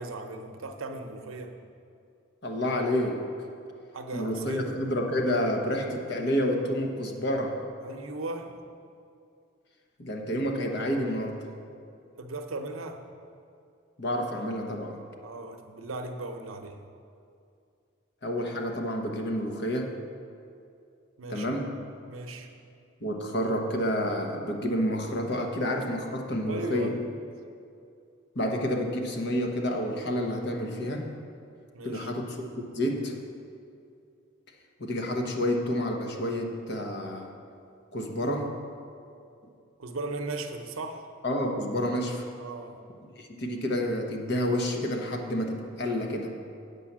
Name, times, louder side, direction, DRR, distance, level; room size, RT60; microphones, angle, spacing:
voice 1, 0.0-1.6 3.9-4.8 7.8-8.7 12.2-13.0 15.2-16.8 21.2-21.5 22.1-22.5 26.5-27.2 31.7-32.1 39.8-41.1 42.4-42.8, right 2 dB, 85° right, 5 dB, 0.7 m, -37 dB
voice 2, 2.4-3.3 4.1-7.6 10.0-11.4 14.0-15.0 18.2-19.9 21.3-21.7 23.0-27.0 28.3-31.1 31.8-33.2 34.8-37.3 37.9-38.5 41.2-42.3 43.0-46.3, equal, 55° left, 2 dB, 1.0 m, -29 dB
8.0 x 5.5 x 7.3 m, 2.5 s
head